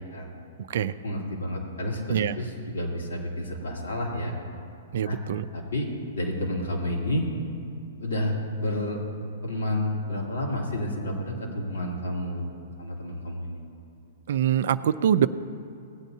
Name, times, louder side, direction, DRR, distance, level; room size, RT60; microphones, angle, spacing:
voice 1, 1.0-4.3 5.1-5.2 5.5-5.9 6.1-7.2 8.0-9.0 9.4-12.4 12.8-13.6, left 1 dB, 85° left, -2 dB, 2.6 m, -30 dB
voice 2, 4.9-5.4 14.3-15.3, right 9 dB, 65° right, 12 dB, 0.4 m, -24 dB
18.0 x 9.0 x 2.7 m, 2.6 s
hypercardioid pair, 135°, 0 cm